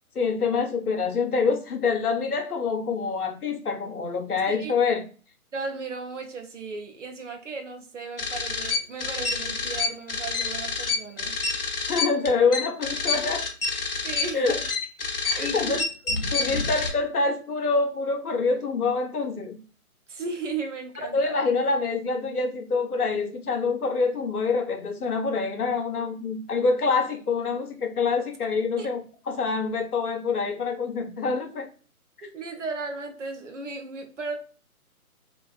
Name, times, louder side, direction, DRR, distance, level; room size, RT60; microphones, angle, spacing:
voice 1, 0.1-5.0 11.9-13.4 14.3-14.6 15.2-15.8 16.3-19.6 21.1-29.0 29.3-31.7, left 4 dB, 85° left, 0.7 m, -26 dB
voice 2, 5.5-11.4 14.0-14.6 15.3-15.9 16.5-16.6 20.1-21.3 28.8-28.9 32.2-34.3, right 4 dB, 55° right, 0.6 m, -35 dB
sound 1, 8.2-16.9, left 4 dB, 45° left, 0.4 m, -28 dB
2.4 x 2.3 x 2.3 m
figure-of-eight pair, 145°, 44 cm